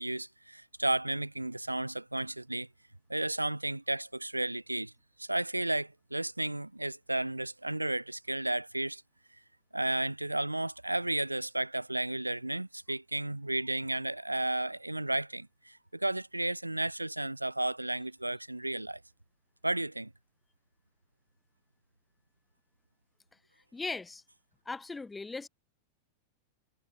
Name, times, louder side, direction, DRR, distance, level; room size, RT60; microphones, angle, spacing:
voice 1, 0.0-2.7 3.1-4.9 5.2-9.0 9.7-19.0 19.6-20.1, right 1 dB, 85° right, 0.5 m, -33 dB
voice 2, 23.7-24.2 24.7-25.5, left 3 dB, 10° left, 0.5 m, -38 dB
figure-of-eight pair, 90°, 0 cm